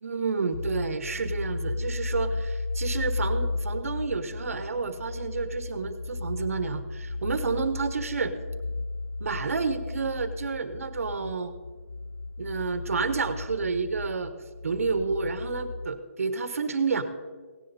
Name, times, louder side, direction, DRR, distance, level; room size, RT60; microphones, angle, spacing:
voice 1, 0.0-8.3 9.2-11.5 12.4-14.3 14.6-17.0, right 4 dB, 70° right, 10 dB, 1.2 m, -30 dB
sound 1, 0.5-15.9, left 3 dB, 90° left, 0.6 m, -34 dB
17.0 x 10.5 x 4.2 m, 1.5 s
hypercardioid pair, 175°, 8 cm